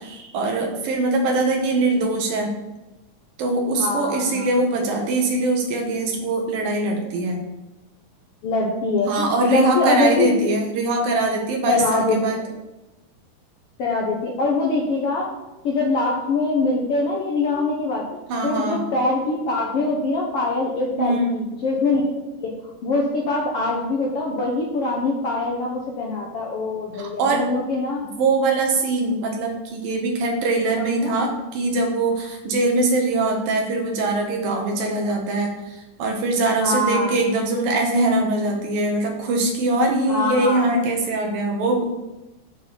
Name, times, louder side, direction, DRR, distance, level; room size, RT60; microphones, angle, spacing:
voice 1, 0.0-2.5 3.4-7.4 9.1-12.4 18.3-18.9 21.0-21.3 27.0-27.4 28.2-41.9, right 2 dB, 75° right, 1 dB, 3.2 m, -22 dB
voice 2, 3.8-4.5 8.4-10.4 11.7-12.5 13.8-15.3 15.6-22.5 22.8-28.1 30.8-31.1 36.6-37.2 40.1-40.7, left 3 dB, 65° left, -2 dB, 1.5 m, -23 dB
8.6 x 4.8 x 7.0 m, 1.0 s
omnidirectional pair, 4.0 m